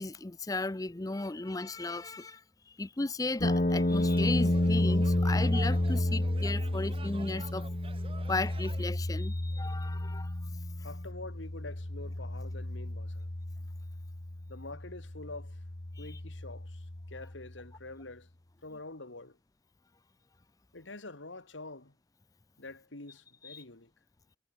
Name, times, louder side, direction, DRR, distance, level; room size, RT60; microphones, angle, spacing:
voice 1, 0.0-7.7 8.3-10.3 16.0-16.1 23.4-23.6, left 2 dB, 20° left, 0.5 m, -35 dB
sound 1, 3.4-17.4, left 1 dB, 40° left, 1.3 m, -31 dB
sound 2, 3.9-8.9, right 3 dB, 30° right, 1.6 m, -49 dB
voice 2, 10.8-13.3 14.5-15.6 16.0-18.3 18.6-19.4 20.7-22.0 22.6-23.9, left 2 dB, 80° left, 2.5 m, -46 dB
head